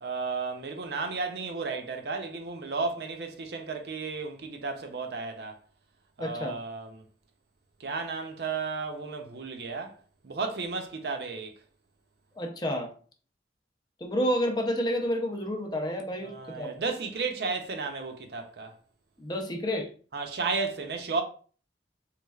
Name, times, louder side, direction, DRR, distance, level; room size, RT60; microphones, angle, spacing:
voice 1, 0.0-5.6 6.2-7.0 7.8-9.9 10.2-11.5 16.2-18.7 20.1-21.2, right 4 dB, 65° right, 0.6 m, -33 dB
voice 2, 6.2-6.6 12.4-12.9 14.0-16.7 19.2-19.9, equal, 25° left, 0.5 m, -30 dB
3.4 x 3.1 x 2.3 m
head